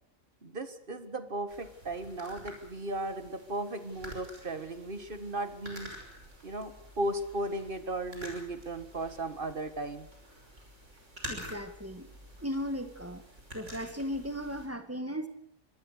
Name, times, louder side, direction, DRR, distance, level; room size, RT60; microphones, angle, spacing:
voice 1, 0.4-5.9 6.4-10.1, right 1 dB, 40° right, 11 dB, 1.9 m, -36 dB
sound 1, 1.5-14.7, equal, 60° right, 6.1 m, -48 dB
voice 2, 11.3-12.1 12.4-13.2 13.5-15.3, equal, 10° right, 8 dB, 2.1 m, -36 dB
25.0 x 19.5 x 6.7 m, 0.69 s
omnidirectional pair, 1.4 m